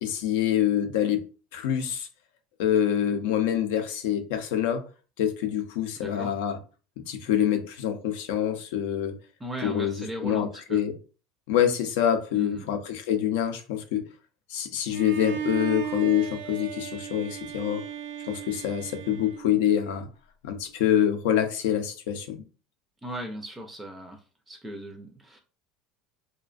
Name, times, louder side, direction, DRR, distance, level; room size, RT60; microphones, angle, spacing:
voice 1, 0.0-1.2 1.5-2.1 2.6-4.8 5.2-6.6 7.1-9.2 9.6-10.0 10.2-10.9 11.5-14.0 14.5-17.8 18.3-20.1 20.4-22.4, left 10 dB, 80° left, 0.5 m, -26 dB
voice 2, 6.0-6.3 9.4-10.8 12.3-12.7 23.0-25.4, equal, 15° right, 0.4 m, -37 dB
Bowed string instrument, 14.9-19.9, right 9 dB, 80° right, 0.4 m, -36 dB
2.4 x 2.1 x 2.4 m
supercardioid pair, 120°, 0 cm